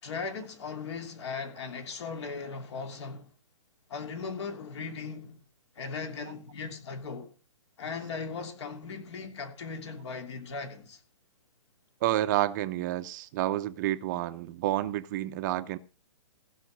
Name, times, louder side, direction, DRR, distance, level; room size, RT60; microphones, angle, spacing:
voice 1, 0.0-3.3 3.9-5.4 5.7-7.3 7.8-11.0, left 5 dB, 55° left, 3.0 m, -38 dB
voice 2, 12.0-15.8, right 14 dB, 35° right, 0.7 m, -29 dB
15.5 x 5.8 x 6.6 m
hypercardioid pair, 140°, 17 cm